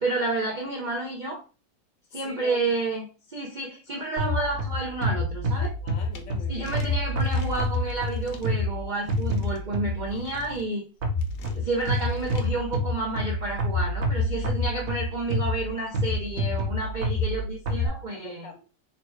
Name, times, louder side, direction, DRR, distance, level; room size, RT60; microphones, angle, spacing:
voice 1, 0.0-1.4 2.1-5.8 6.5-10.9 11.4-18.5, right 2 dB, 85° right, 0.4 m, -30 dB
voice 2, 2.2-2.6 5.8-6.7 18.1-18.6, left 3 dB, 85° left, 1.7 m, -42 dB
sound 1, 4.2-10.2 11.0-17.9, left 1 dB, 55° right, 1.1 m, -28 dB
sound 2, 6.1-6.2 6.6-8.5 9.1-9.6 10.1-10.6 11.2-12.5, left 3 dB, 60° left, 0.9 m, -41 dB
3.9 x 2.2 x 4.4 m
omnidirectional pair, 1.9 m